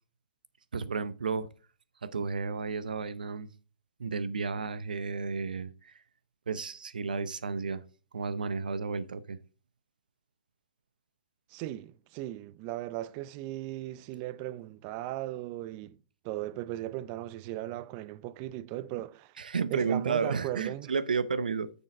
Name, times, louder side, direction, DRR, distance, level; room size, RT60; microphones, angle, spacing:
voice 1, 0.7-1.5 2.0-3.5 4.0-5.9 6.5-7.8 8.1-9.4 19.4-21.7, right 5 dB, 85° right, 0.7 m, -32 dB
voice 2, 11.5-16.0 16.2-19.3 19.7-20.9, right 15 dB, 35° right, 0.5 m, -37 dB
6.7 x 6.4 x 4.3 m
hypercardioid pair, 135°, 5 cm